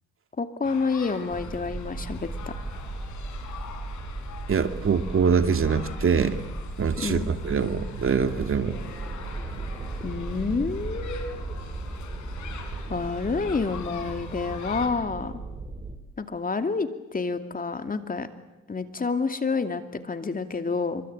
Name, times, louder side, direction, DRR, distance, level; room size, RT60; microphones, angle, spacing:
voice 1, 0.4-2.5 7.0-7.3 10.0-11.4 12.9-15.4 16.2-18.3 18.7-21.0, left 4 dB, 30° left, 8 dB, 2.6 m, -29 dB
sound 1, 0.6-14.9, left 7 dB, 70° left, 5.6 m, -44 dB
sound 2, 1.3-16.0, right 2 dB, 25° right, 4.9 m, -36 dB
voice 2, 4.5-6.4 6.8-8.8, right 6 dB, 45° right, 9 dB, 2.4 m, -24 dB
26.0 x 24.0 x 8.9 m, 0.97 s
cardioid pair, 90°, 30 cm